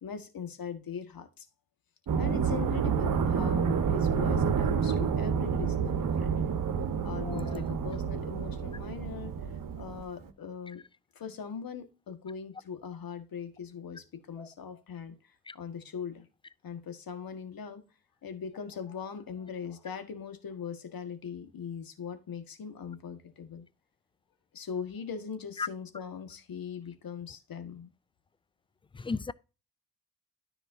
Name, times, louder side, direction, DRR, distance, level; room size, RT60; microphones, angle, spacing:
voice 1, 0.0-1.5 2.2-6.4 7.0-10.8 11.1-16.2 16.6-17.8 18.2-23.6 24.5-27.9, left 7 dB, 50° left, 1.8 m, -40 dB
sound 1, 2.1-10.3, right 6 dB, 45° right, 1.2 m, -29 dB
voice 2, 7.3-7.6 14.4-14.5 15.5-15.6 25.6-25.7 28.9-29.3, left 4 dB, 15° left, 0.3 m, -35 dB
13.0 x 4.9 x 2.7 m
hypercardioid pair, 45°, 44 cm